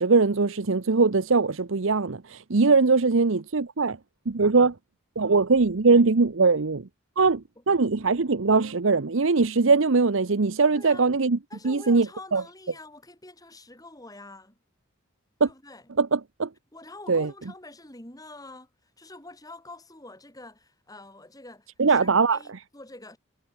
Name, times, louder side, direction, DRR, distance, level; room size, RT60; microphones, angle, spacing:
voice 1, 0.0-4.0 4.3-4.7 5.2-6.9 7.2-11.4 11.6-12.4 15.4-15.5 16.0-16.5 17.1-17.3 21.8-22.4, right 4 dB, 70° right, 0.8 m, -21 dB
voice 2, 10.7-11.0 11.5-14.6 15.4-15.9 16.7-23.2, left 2 dB, 15° left, 5.2 m, -46 dB
head